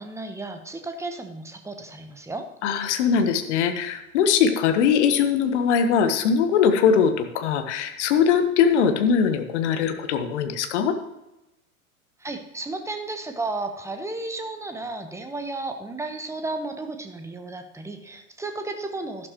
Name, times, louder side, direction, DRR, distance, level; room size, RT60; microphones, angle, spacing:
voice 1, 0.0-2.5 12.2-19.3, right 2 dB, 5° right, 6 dB, 1.1 m, -33 dB
voice 2, 2.6-11.0, left 7 dB, 50° left, 8 dB, 1.4 m, -21 dB
12.0 x 11.5 x 3.1 m, 0.92 s
figure-of-eight pair, 85°, 43 cm